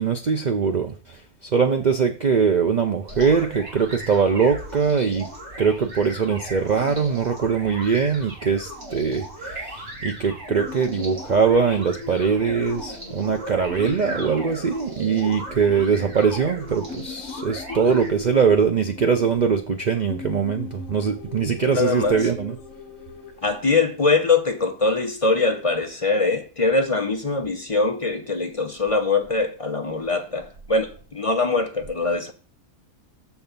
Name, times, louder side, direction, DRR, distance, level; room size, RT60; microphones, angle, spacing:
voice 1, 0.0-5.3 5.6-22.5, right 6 dB, 70° right, 0.4 m, -22 dB
sound 1, 3.1-18.1, right 1 dB, 50° right, 2.9 m, -37 dB
sound 2, 10.5-24.9, left 5 dB, 65° left, 1.3 m, -39 dB
voice 2, 21.7-22.2 23.4-32.3, left 3 dB, 35° left, 0.5 m, -22 dB
6.8 x 4.7 x 5.2 m
omnidirectional pair, 1.6 m